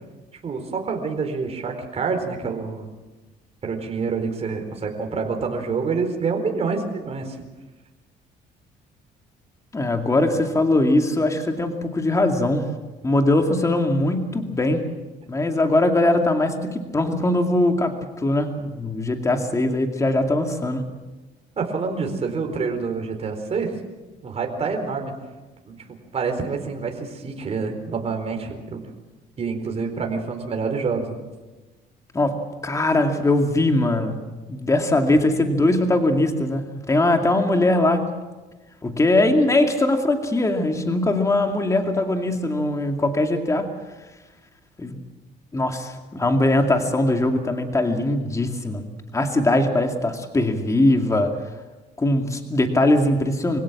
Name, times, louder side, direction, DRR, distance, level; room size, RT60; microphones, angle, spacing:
voice 1, 0.4-2.9 3.6-7.4 21.6-23.7 24.2-25.1 25.6-25.8 26.1-28.9 29.4-31.2, right 5 dB, 35° right, 3 dB, 4.3 m, -27 dB
voice 2, 9.7-12.7 13.0-14.9 15.3-20.8 32.1-32.4 32.6-34.2 34.5-38.1 38.8-43.7 44.8-45.0 45.5-48.8 49.1-51.3 52.0-53.6, left 2 dB, 20° left, 4 dB, 2.4 m, -21 dB
25.5 x 17.0 x 7.5 m, 1.2 s
cardioid pair, 110°, 17 cm